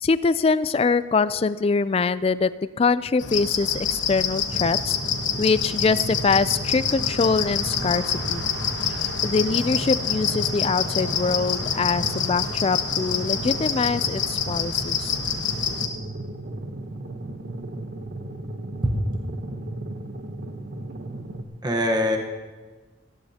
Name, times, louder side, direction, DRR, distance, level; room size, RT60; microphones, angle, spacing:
voice 1, 0.0-2.5 2.8-5.0 5.4-8.4 9.2-15.2, left 4 dB, 30° left, 16 dB, 0.3 m, -23 dB
sound 1, 3.2-15.9, left 6 dB, 85° left, 1.2 m, -27 dB
sound 2, 4.5-21.4, right 1 dB, 55° right, 1.0 m, -35 dB
voice 2, 18.8-19.2 21.6-22.2, equal, 25° right, 2 dB, 1.1 m, -23 dB
18.5 x 14.5 x 2.8 m, 1.3 s
head